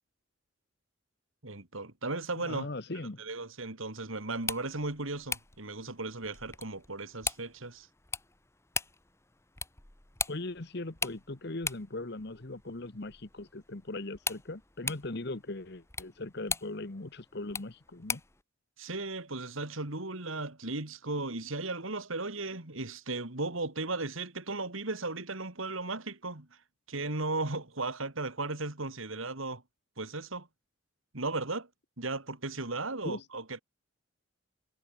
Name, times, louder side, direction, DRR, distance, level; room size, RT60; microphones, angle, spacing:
voice 1, 1.4-2.7 3.2-7.9 18.8-26.5 26.9-29.6 30.0-30.5 31.1-31.7 32.0-33.6, right 2 dB, 75° right, 3.0 m, -36 dB
voice 2, 2.4-3.2 10.3-18.2 33.0-33.2, left 2 dB, 50° left, 1.2 m, -39 dB
sound 1, 4.3-18.4, left 4 dB, 15° left, 1.3 m, -41 dB
head